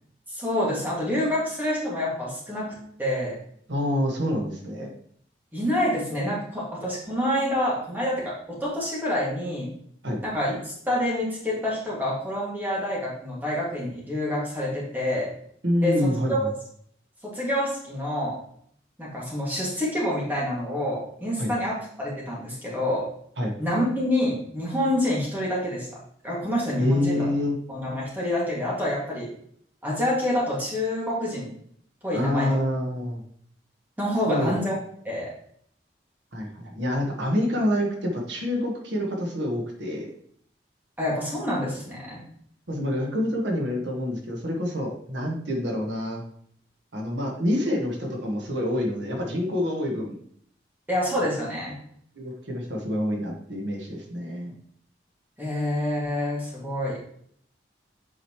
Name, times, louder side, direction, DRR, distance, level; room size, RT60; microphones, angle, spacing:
voice 1, 0.3-2.7 3.0-3.4 5.5-9.7 10.2-15.3 15.8-16.4 17.2-18.3 19.0-23.1 23.6-25.9 26.2-27.2 27.7-29.3 29.8-31.5 32.0-32.5 34.0-34.8 35.0-35.3 41.0-42.2 50.9-51.7 55.4-57.0, left 1 dB, 10° right, -5 dB, 2.3 m, -27 dB
voice 2, 3.7-4.9 10.0-10.2 15.6-16.5 21.4-21.5 23.4-23.5 26.8-27.6 32.1-33.2 34.3-34.5 36.3-40.1 42.7-46.2 46.9-50.1 52.1-54.5, left 1 dB, 90° right, 0 dB, 1.5 m, -27 dB
7.8 x 5.0 x 3.1 m, 0.64 s
head